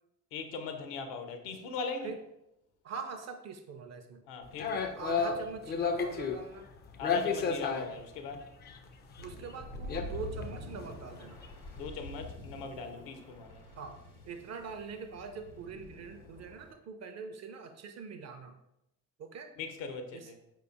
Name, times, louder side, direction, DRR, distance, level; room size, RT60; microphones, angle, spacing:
voice 1, 0.3-2.1 4.3-4.7 7.0-8.5 11.8-13.6 19.6-20.4, left 4 dB, 65° left, 0.6 m, -40 dB
voice 2, 2.8-4.2 4.7-6.7 9.2-11.4 13.8-14.0 14.3-18.5 19.2-19.5 20.1-20.3, right 5 dB, 35° right, 0.5 m, -43 dB
sound 1, 4.6-6.5 7.0-8.8 9.1-9.3 9.6-10.0 10.4-10.5 10.8-11.0 11.3-11.5, left 5 dB, 25° left, 0.3 m, -32 dB
sound 2, 9.2-16.7, left 1 dB, 90° left, 1.4 m, -46 dB
4.7 x 2.9 x 2.4 m
figure-of-eight pair, 50°, 46 cm